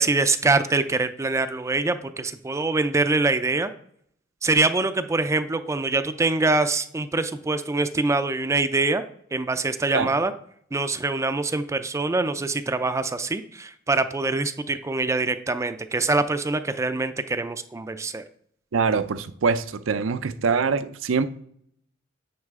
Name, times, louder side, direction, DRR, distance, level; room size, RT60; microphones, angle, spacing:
voice 1, 0.0-3.7 4.4-9.0 9.3-10.3 10.7-18.2, right 3 dB, 15° right, 10 dB, 0.4 m, -24 dB
voice 2, 18.7-21.3, right 5 dB, 80° right, 12 dB, 0.5 m, -24 dB
9.6 x 4.8 x 3.6 m, 0.65 s
head